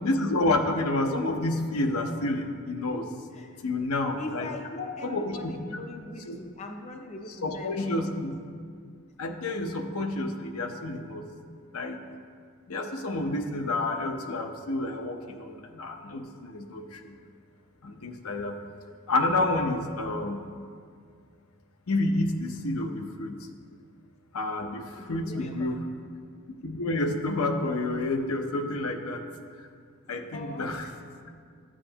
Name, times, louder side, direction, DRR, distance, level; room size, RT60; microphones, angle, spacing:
voice 1, 0.0-3.1 3.6-4.5 5.1-5.5 6.3-6.4 7.4-8.3 9.2-11.3 11.7-12.0 12.7-17.1 17.8-18.6 19.1-20.5 21.9-23.4 24.3-25.8 26.6-29.2 30.1-30.9, left 2 dB, 80° left, 4 dB, 0.7 m, -29 dB
voice 2, 4.2-8.2 25.0-25.8 30.3-30.7, left 2 dB, 30° left, 3 dB, 0.5 m, -40 dB
13.0 x 7.5 x 2.9 m, 2.1 s
head